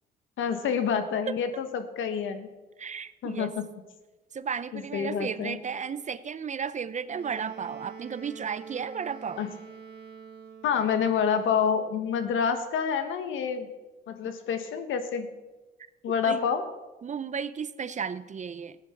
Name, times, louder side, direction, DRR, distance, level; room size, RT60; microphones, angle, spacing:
voice 1, 0.4-2.5 3.2-3.6 4.7-5.6 9.4-9.5 10.6-13.7 14.1-15.3 16.0-16.6, left 7 dB, 80° left, 9 dB, 1.4 m, -28 dB
voice 2, 2.8-3.5 4.3-9.5 16.2-16.4 17.0-18.8, right 6 dB, 35° right, 15 dB, 0.7 m, -34 dB
Wind instrument woodwind instrument, 7.1-11.0, right 6 dB, 55° right, 2.3 m, -46 dB
14.5 x 9.9 x 6.0 m, 1.2 s
cardioid pair, 90°, 20 cm